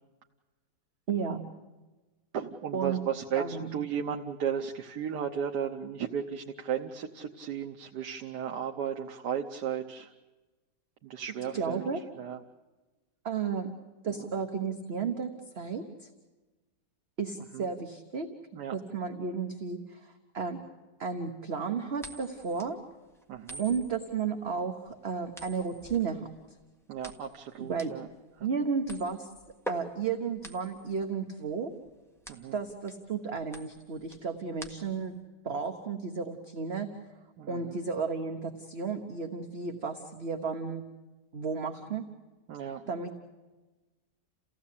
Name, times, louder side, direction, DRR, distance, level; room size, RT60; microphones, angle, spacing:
voice 1, 1.1-1.4 2.7-3.0 3.4-3.8 11.5-12.0 13.2-13.7 14.0-16.1 17.2-18.3 18.7-20.6 21.0-22.8 23.6-26.3 27.6-27.9 28.4-29.3 29.7-31.7 32.5-35.2 35.4-36.9 37.5-40.8 41.3-42.1 42.9-43.2, right 5 dB, 40° right, 4 dB, 1.3 m, -33 dB
voice 2, 2.3-10.1 11.0-11.9 12.2-12.4 14.1-14.3 17.5-17.7 18.5-18.7 23.3-23.6 26.9-28.1 28.4-28.5 32.3-32.6 37.4-37.7 42.5-42.8, right 8 dB, 70° right, 2 dB, 1.5 m, -35 dB
sound 1, 22.0-35.2, equal, ahead, 1.5 m, -47 dB
29.0 x 16.0 x 8.5 m, 1.2 s
omnidirectional pair, 1.9 m